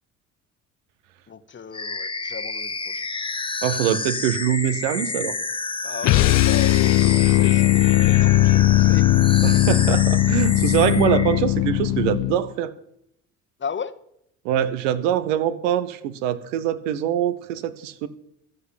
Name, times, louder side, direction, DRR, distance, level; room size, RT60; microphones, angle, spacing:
voice 1, 1.3-3.1 5.8-9.1 9.5-9.6 13.6-14.0, left 6 dB, 30° left, 12 dB, 1.1 m, -35 dB
sound 1, 1.7-11.4, left 3 dB, 15° left, 0.8 m, -30 dB
voice 2, 3.6-5.4 9.4-12.7 14.4-18.1, right 11 dB, 80° right, 14 dB, 0.9 m, -23 dB
sound 2, 6.0-12.5, left 16 dB, 55° left, 0.4 m, -18 dB
13.5 x 5.4 x 8.6 m, 0.76 s
hypercardioid pair, 60°, 37 cm